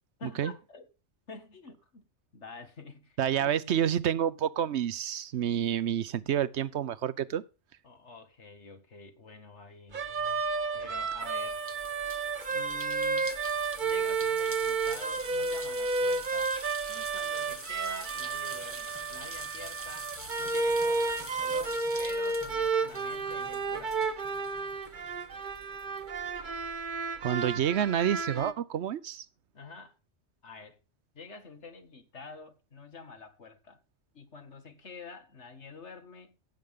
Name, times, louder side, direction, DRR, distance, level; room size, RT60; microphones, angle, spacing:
voice 1, 0.2-0.9 1.3-2.1 2.3-3.5 7.8-10.1 10.7-11.6 12.5-13.4 13.8-16.5 16.9-20.1 20.4-24.1 29.5-30.0 30.4-30.8 31.1-33.8 34.1-36.4, left 4 dB, 75° left, 2.2 m, -48 dB
voice 2, 3.2-7.4 27.2-29.3, right 9 dB, 75° right, 1.0 m, -29 dB
sound 1, 9.9-28.5, right 4 dB, 45° right, 1.1 m, -32 dB
sound 2, 11.2-25.2 25.6-26.8, right 1 dB, 10° right, 1.5 m, -45 dB
16.0 x 8.0 x 3.7 m
omnidirectional pair, 1.2 m